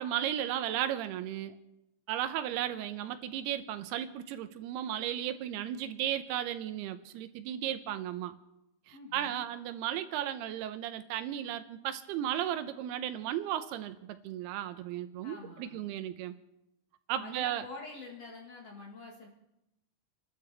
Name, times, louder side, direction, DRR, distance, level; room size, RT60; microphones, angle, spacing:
voice 1, 0.0-1.6 2.1-8.4 8.9-16.4 17.1-17.6, right 11 dB, 85° right, 10 dB, 2.8 m, -35 dB
voice 2, 8.9-9.5 15.2-15.9 17.2-19.3, left 3 dB, 50° left, -1 dB, 2.2 m, -47 dB
30.0 x 12.5 x 3.4 m, 0.89 s
omnidirectional pair, 4.6 m